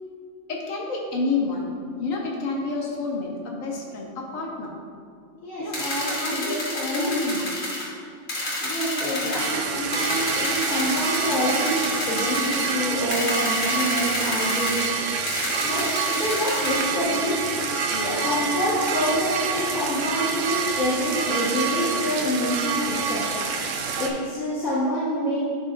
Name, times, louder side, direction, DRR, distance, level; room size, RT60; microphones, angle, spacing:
voice 1, 0.5-1.7 2.0-4.8 5.6-7.5 9.2-9.4 16.3-16.5 17.9-18.4, left 3 dB, 90° left, -1 dB, 1.5 m, -30 dB
voice 2, 5.4-7.2 8.6-11.8 12.0-14.8 15.5-17.3 18.0-23.2 24.0-25.4, equal, 65° left, -12 dB, 1.9 m, -27 dB
sound 1, 5.7-7.9 8.3-9.5 9.9-12.7 13.1-14.9 15.3-16.9, left 1 dB, 40° left, 1.8 m, -29 dB
sound 2, 9.4-24.1, right 5 dB, 75° right, 1.0 m, -27 dB
12.0 x 4.2 x 2.6 m, 2.3 s
omnidirectional pair, 1.3 m